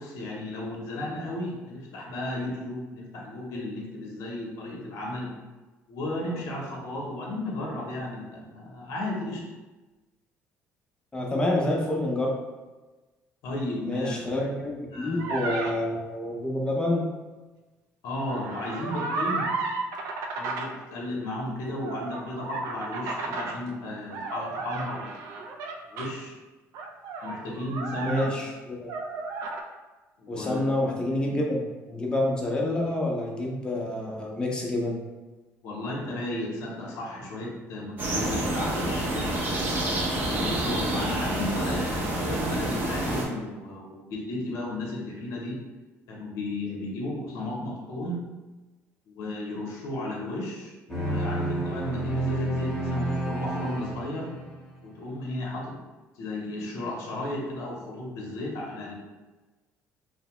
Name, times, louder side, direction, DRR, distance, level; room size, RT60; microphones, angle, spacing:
voice 1, 0.0-5.3 5.9-9.4 13.4-14.4 14.9-15.7 18.0-19.5 20.4-25.2 25.9-26.4 27.2-28.3 30.2-30.6 31.1-31.4 35.6-39.6 40.3-45.6 46.1-48.2 49.1-54.3 54.8-55.8 56.2-58.9, left 1 dB, 70° left, -2 dB, 0.7 m, -34 dB
voice 2, 11.1-12.4 13.8-17.1 28.0-28.9 30.3-35.0, left 1 dB, 15° left, -2 dB, 0.5 m, -28 dB
sound 1, 15.2-15.7 18.2-20.7 21.8-23.6 24.1-26.1 26.7-28.6 28.9-29.6, right 3 dB, 75° right, 0.4 m, -33 dB
sound 2, 38.0-43.2, right 1 dB, 35° right, 0.6 m, -28 dB
sound 3, 50.9-54.7, right 2 dB, 5° right, 0.8 m, -29 dB
2.8 x 2.0 x 2.9 m, 1.2 s
cardioid pair, 135°, 6 cm